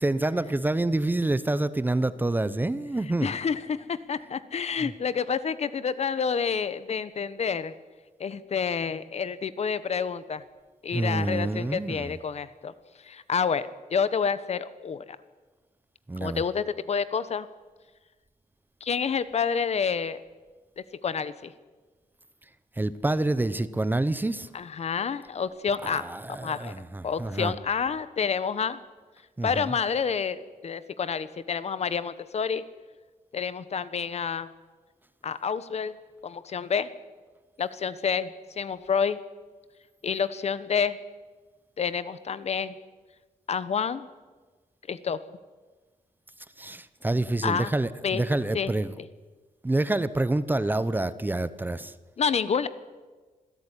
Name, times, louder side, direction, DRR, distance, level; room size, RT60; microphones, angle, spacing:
voice 1, 0.0-3.3 4.8-4.9 10.9-12.2 16.1-16.4 22.8-24.5 25.8-27.5 29.4-29.7 46.6-48.9 49.6-51.9, right 2 dB, 15° right, 15 dB, 0.8 m, -27 dB
voice 2, 3.2-7.7 8.2-10.4 10.8-12.7 13.0-15.2 16.2-17.5 18.8-20.2 20.8-21.5 24.5-26.0 26.3-26.7 27.0-28.8 29.4-32.6 33.3-34.5 35.2-36.0 36.2-36.9 37.6-38.3 38.6-39.2 40.0-41.0 41.8-42.7 43.5-44.1 44.9-45.2 47.4-47.7 48.0-48.2 48.5-48.7 49.0-49.1 52.2-52.7, left 6 dB, 50° left, 15 dB, 1.2 m, -28 dB
26.5 x 16.5 x 9.9 m, 1.3 s
wide cardioid pair, 155°, 14 cm